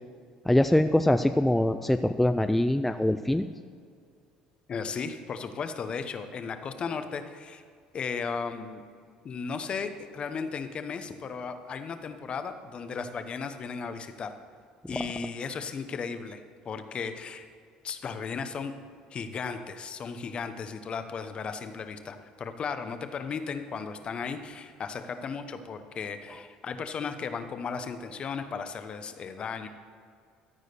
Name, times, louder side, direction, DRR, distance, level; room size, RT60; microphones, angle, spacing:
voice 1, 0.5-3.5, left 1 dB, 5° left, 8 dB, 0.3 m, -23 dB
voice 2, 4.7-7.6 7.9-8.8 9.2-14.3 14.9-17.5 17.8-18.7 19.1-29.7, left 5 dB, 40° left, 9 dB, 0.9 m, -35 dB
13.5 x 4.9 x 6.7 m, 2.2 s
supercardioid pair, 95°, 3 cm